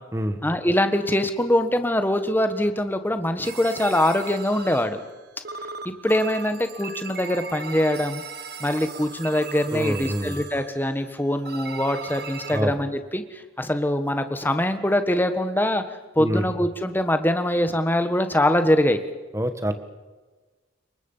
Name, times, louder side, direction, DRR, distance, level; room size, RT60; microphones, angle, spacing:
voice 1, 0.4-5.0 5.8-8.2 8.6-15.8 16.1-19.0, left 1 dB, 10° left, 8 dB, 1.5 m, -23 dB
sound 1, 3.4-5.2 5.4-11.0 11.4-12.6, right 4 dB, 50° right, 1.5 m, -38 dB
voice 2, 9.7-10.4 12.5-12.7 16.2-16.5 19.3-19.7, equal, 15° right, 9 dB, 1.6 m, -26 dB
27.5 x 23.5 x 5.7 m, 1.3 s
head